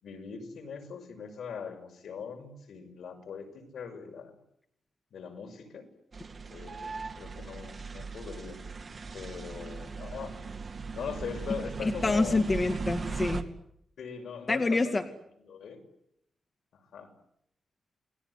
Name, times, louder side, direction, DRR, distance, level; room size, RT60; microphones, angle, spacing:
voice 1, 0.0-4.3 5.1-5.9 6.5-8.6 9.1-10.4 10.9-12.4 14.0-15.0 15.4-15.8 16.7-17.1, left 6 dB, 75° left, 5 dB, 6.0 m, -41 dB
sound 1, 6.1-13.4, right 4 dB, 35° right, 2.3 m, -38 dB
voice 2, 11.8-13.4 14.5-15.0, left 3 dB, 25° left, 6 dB, 2.3 m, -27 dB
29.0 x 20.5 x 9.8 m, 0.75 s
wide cardioid pair, 145°, 0 cm